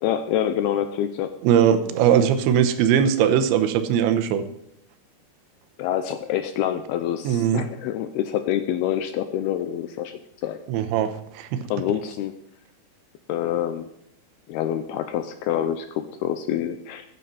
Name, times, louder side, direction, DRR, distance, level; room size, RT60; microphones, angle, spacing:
voice 1, 0.0-1.3 5.8-10.6 11.7-12.3 13.3-13.9 14.5-17.1, left 10 dB, 80° left, 9 dB, 2.4 m, -26 dB
voice 2, 1.4-4.4 7.2-7.6 10.7-11.6, right 9 dB, 85° right, 9 dB, 3.3 m, -20 dB
15.5 x 9.2 x 4.2 m, 0.78 s
omnidirectional pair, 5.1 m